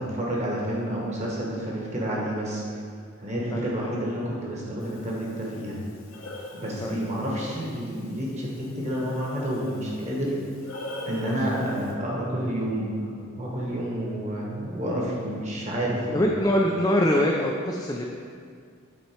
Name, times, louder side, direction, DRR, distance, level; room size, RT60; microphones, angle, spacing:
voice 1, 0.0-2.6 3.2-5.8 6.5-10.3 11.0-12.9 13.4-16.2, equal, 35° right, -4 dB, 1.4 m, -29 dB
Breathing, 4.8-11.9, left 1 dB, 75° left, 1.0 m, -43 dB
voice 2, 16.1-18.1, left 1 dB, 15° left, -1 dB, 0.4 m, -23 dB
8.4 x 4.4 x 4.5 m, 2.1 s
head